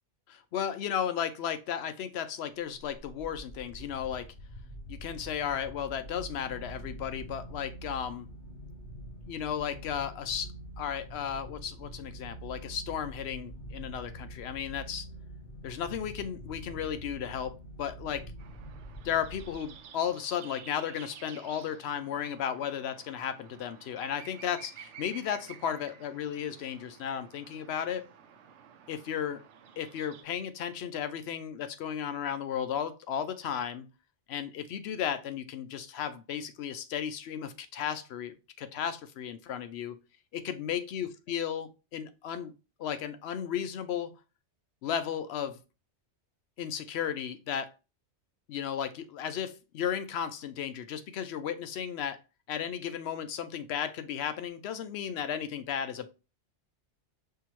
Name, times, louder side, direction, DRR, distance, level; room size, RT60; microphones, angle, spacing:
voice 1, 0.3-4.2 4.9-8.3 9.2-10.5 10.8-15.1 15.6-18.2 19.0-28.1 28.9-29.4 29.8-33.9 34.3-40.0 40.3-42.5 42.8-44.1 44.8-45.6 46.6-47.7 48.5-52.2 52.5-56.1, left 8 dB, 70° left, 0.8 m, -34 dB
sound 1, 2.7-20.0, right 1 dB, 50° left, 2.2 m, -45 dB
sound 2, 18.4-30.2, right 8 dB, 90° right, 0.9 m, -52 dB
5.6 x 2.8 x 2.9 m
omnidirectional pair, 1.2 m